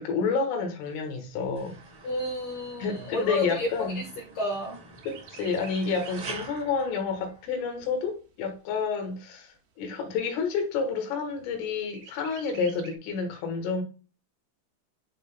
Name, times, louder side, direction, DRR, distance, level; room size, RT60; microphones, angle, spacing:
voice 1, 0.0-1.8 2.8-4.0 5.1-13.8, left 5 dB, 90° left, 4.0 m, -29 dB
Chirp tweet, 0.8-4.6 5.0-6.6 7.1-7.2 7.5-8.5 9.1-9.2 9.6-9.7 10.1-10.6 11.9-13.0, right 6 dB, 70° right, 2.7 m, -50 dB
sound 1, 1.6-7.8, right 3 dB, 90° right, 1.1 m, -45 dB
voice 2, 2.0-3.7 4.0-4.1 4.4-4.8, left 1 dB, 65° left, 2.1 m, -30 dB
11.0 x 3.9 x 2.2 m
omnidirectional pair, 5.6 m